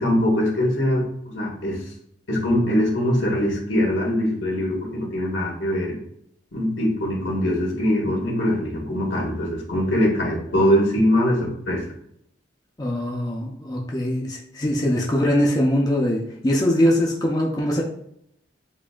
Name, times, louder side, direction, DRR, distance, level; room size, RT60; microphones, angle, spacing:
voice 1, 0.0-1.8 2.3-6.0 6.5-11.8, equal, 80° left, -3 dB, 1.6 m, -22 dB
voice 2, 12.8-17.8, equal, 20° left, -2 dB, 0.6 m, -22 dB
7.2 x 2.7 x 2.4 m, 0.72 s
head